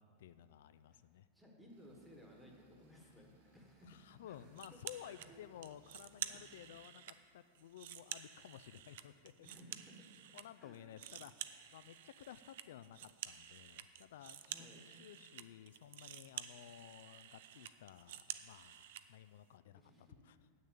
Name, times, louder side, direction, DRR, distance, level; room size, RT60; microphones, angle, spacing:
voice 1, 0.0-1.3 3.8-9.5 10.3-19.9 20.2-20.4, left 11 dB, 75° left, 13 dB, 0.3 m, -55 dB
voice 2, 0.9-4.0 4.2-4.8 5.0-5.4 6.2-6.4 9.4-10.0 10.6-10.9 14.4-14.8 19.7-20.2, equal, 5° right, -1 dB, 1.3 m, -60 dB
sound 1, 1.7-6.7, right 1 dB, 85° right, 2.7 m, -72 dB
sound 2, 4.5-5.3 5.6-7.2 7.5-10.4 10.7-19.0, right 12 dB, 60° right, 0.5 m, -50 dB
8.7 x 6.5 x 8.4 m, 2.1 s
supercardioid pair, 170°, 0 cm